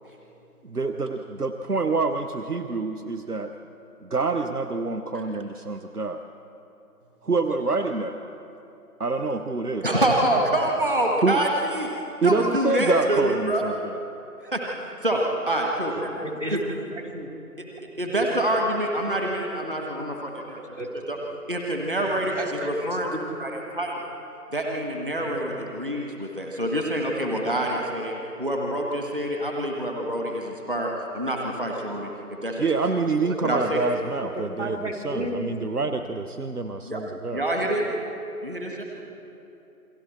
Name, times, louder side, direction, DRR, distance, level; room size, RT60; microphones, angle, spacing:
voice 1, 0.6-3.5 4.0-6.2 7.2-8.2 9.0-10.0 11.2-11.4 12.2-14.0 32.6-34.8 35.0-37.4, right 3 dB, 70° right, 7 dB, 1.1 m, -26 dB
voice 2, 9.8-11.9 12.2-13.8 14.4-14.6 15.0-16.1 18.0-20.6 21.1-21.2 21.5-23.1 23.4-24.0 24.5-32.1 32.4-32.6 33.4-33.9 36.9-37.0 37.3-37.9 38.4-38.8, right 1 dB, 35° right, 0 dB, 1.5 m, -26 dB
voice 3, 15.9-17.3 18.1-18.2 20.5-20.9 21.1-21.2 22.0-23.2 25.3-25.5 33.2-33.4 34.3-35.5 35.8-36.0, right 1 dB, 50° right, 2 dB, 2.9 m, -34 dB
28.5 x 23.0 x 4.4 m, 2.9 s
figure-of-eight pair, 170°, 47 cm